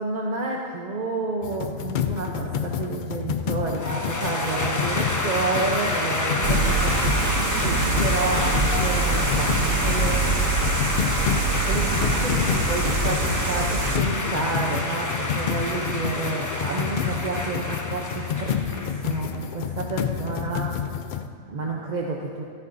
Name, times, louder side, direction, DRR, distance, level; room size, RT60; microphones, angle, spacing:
voice 1, 0.0-10.2 11.6-20.7 21.5-22.4, right 3 dB, 40° right, -1 dB, 0.7 m, -30 dB
sound 1, 1.4-21.3, left 8 dB, 85° left, 0.4 m, -29 dB
sound 2, 3.8-19.3, left 2 dB, 20° left, 0.6 m, -28 dB
sound 3, 6.4-14.0, right 4 dB, 85° right, 1.2 m, -25 dB
14.0 x 13.5 x 2.6 m, 2.1 s
omnidirectional pair, 1.4 m